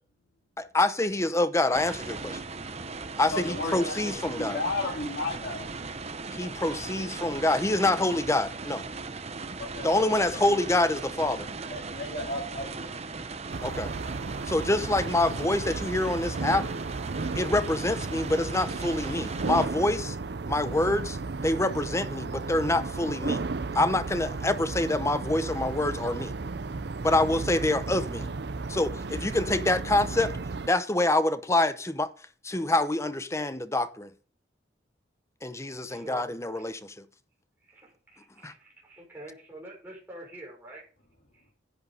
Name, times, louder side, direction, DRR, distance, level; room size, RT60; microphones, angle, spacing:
voice 1, 0.6-2.4 3.2-4.6 6.3-8.8 9.8-11.5 13.6-13.9 14.4-16.7 17.4-20.2 20.5-21.2 21.4-23.4 23.7-26.3 27.0-28.3 28.7-30.3 30.7-32.1 32.4-34.1 35.4-36.9 38.4-38.5, left 2 dB, 15° left, 0.8 m, -26 dB
sound 1, 1.7-19.7, right 4 dB, 35° right, 1.0 m, -38 dB
voice 2, 3.3-5.7 9.6-10.0 10.3-10.4 11.7-12.9, left 2 dB, 50° left, 3.5 m, -34 dB
sound 2, 13.5-30.7, right 3 dB, 55° right, 0.6 m, -34 dB
voice 3, 35.9-36.3 37.6-40.8 41.3-41.4, right 1 dB, 10° right, 5.9 m, -46 dB
10.5 x 8.9 x 5.0 m
head